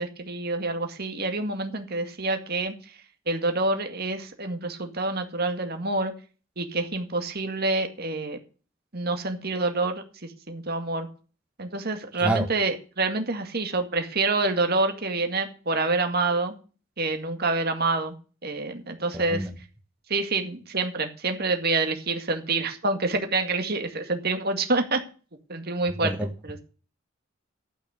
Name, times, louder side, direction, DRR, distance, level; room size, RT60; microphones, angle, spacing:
voice 1, 0.0-2.7 3.3-6.1 6.6-8.4 8.9-11.1 11.6-16.6 17.0-18.1 18.4-19.5 20.1-25.0 25.5-26.6, right 3 dB, 50° right, 5 dB, 2.1 m, -27 dB
voice 2, 19.1-19.5 26.0-26.3, right 1 dB, 5° right, 3 dB, 1.0 m, -27 dB
12.0 x 6.3 x 7.9 m, 0.37 s
head